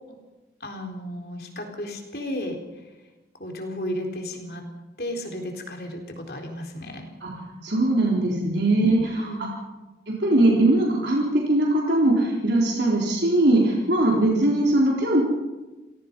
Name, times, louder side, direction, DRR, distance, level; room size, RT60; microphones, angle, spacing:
voice 1, 0.6-2.6 3.4-4.6 5.0-7.1 9.1-9.5, left 1 dB, 55° left, 2 dB, 4.1 m, -33 dB
voice 2, 7.6-9.3 10.1-15.2, right 1 dB, 70° right, -3 dB, 4.0 m, -20 dB
28.5 x 17.5 x 5.4 m, 1.1 s
head